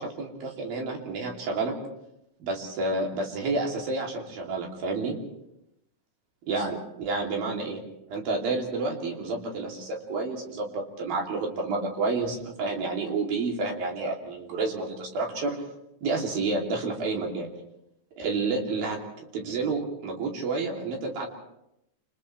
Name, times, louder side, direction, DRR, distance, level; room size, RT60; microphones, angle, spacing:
voice 1, 0.0-1.8 2.4-5.2 6.5-15.6 16.0-17.5 18.2-21.3, right 3 dB, 80° right, 0 dB, 4.7 m, -30 dB
29.0 x 28.5 x 3.3 m, 0.83 s
omnidirectional pair, 4.1 m